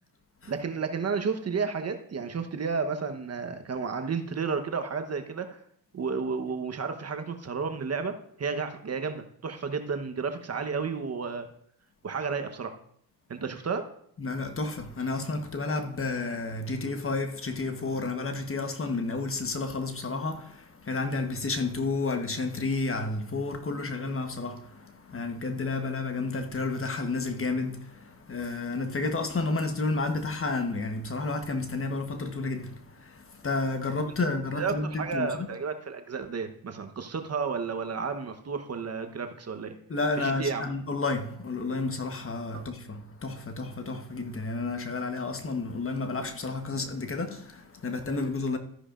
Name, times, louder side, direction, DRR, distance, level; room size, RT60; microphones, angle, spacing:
voice 1, 0.5-5.6 5.9-11.5 12.0-12.8 13.3-13.9 34.5-39.8 40.2-40.7 42.5-42.6 48.2-48.3, right 5 dB, 35° right, 1.1 m, -32 dB
voice 2, 14.2-35.5 39.9-48.6, left 3 dB, 30° left, 1.3 m, -31 dB
13.5 x 9.7 x 2.6 m
supercardioid pair, 75°, 42 cm